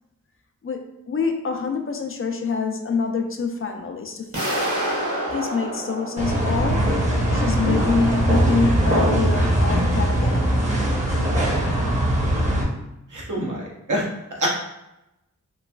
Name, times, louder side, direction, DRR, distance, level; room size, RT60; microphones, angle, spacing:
voice 1, 0.6-4.7 5.3-7.0 7.3-10.6, left 5 dB, 45° left, 4 dB, 0.4 m, -26 dB
sound 1, 4.3-7.2, right 1 dB, 45° right, 1.0 m, -28 dB
sound 2, 6.2-12.6, right 1 dB, 20° right, 0.7 m, -21 dB
voice 2, 13.1-14.5, right 1 dB, 70° right, -3 dB, 0.8 m, -27 dB
3.0 x 2.4 x 2.3 m, 0.90 s
wide cardioid pair, 65°, 31 cm